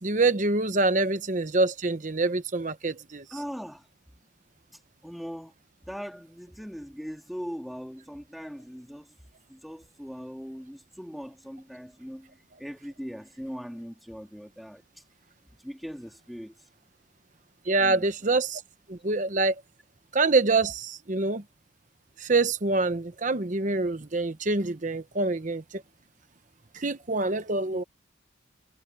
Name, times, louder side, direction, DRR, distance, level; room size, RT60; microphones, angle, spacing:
voice 1, 0.0-3.2 17.7-18.6 18.9-19.5 20.1-21.4 22.2-25.6 26.7-27.8, right 3 dB, 40° right, 1.0 m, -25 dB
voice 2, 3.3-3.9 4.7-5.5 5.9-16.7 17.8-18.1, equal, ahead, 2.5 m, -40 dB
head